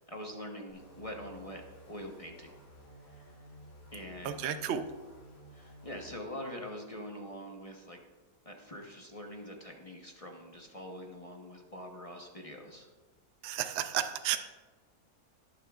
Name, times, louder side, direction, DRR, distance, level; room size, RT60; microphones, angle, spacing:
voice 1, 0.1-2.6 3.0-3.5 3.9-4.4 5.5-8.0 8.4-12.9, equal, 25° left, 1 dB, 0.8 m, -44 dB
sound 1, 0.7-6.2, equal, 55° left, 2.6 m, -54 dB
voice 2, 4.2-4.8 13.4-14.4, right 10 dB, 65° right, 8 dB, 0.6 m, -32 dB
20.0 x 7.3 x 2.4 m, 1.3 s
omnidirectional pair, 1.8 m